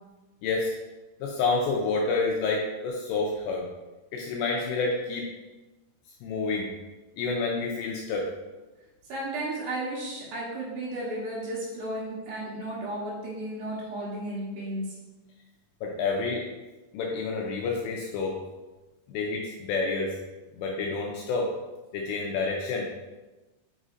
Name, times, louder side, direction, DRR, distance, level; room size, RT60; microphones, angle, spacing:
voice 1, 0.4-0.7 1.2-3.7 4.1-5.3 6.2-6.7 7.2-8.3 15.8-16.5 16.9-18.4 19.1-20.2 20.5-21.5 21.9-23.0, left 3 dB, 85° left, 0 dB, 2.5 m, -28 dB
voice 2, 9.1-15.0, right 1 dB, 70° right, -5 dB, 3.1 m, -34 dB
6.2 x 6.1 x 2.6 m, 1.2 s
omnidirectional pair, 5.5 m